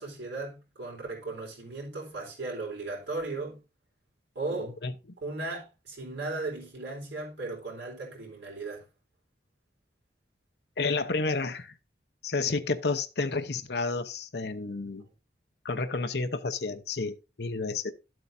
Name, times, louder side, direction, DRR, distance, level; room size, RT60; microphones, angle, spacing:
voice 1, 0.0-3.6 4.3-4.8 5.2-8.8, right 3 dB, 80° right, 4.0 m, -36 dB
voice 2, 10.8-11.7 12.2-15.0 15.6-17.9, left 3 dB, 65° left, 0.8 m, -30 dB
13.0 x 7.7 x 2.6 m
head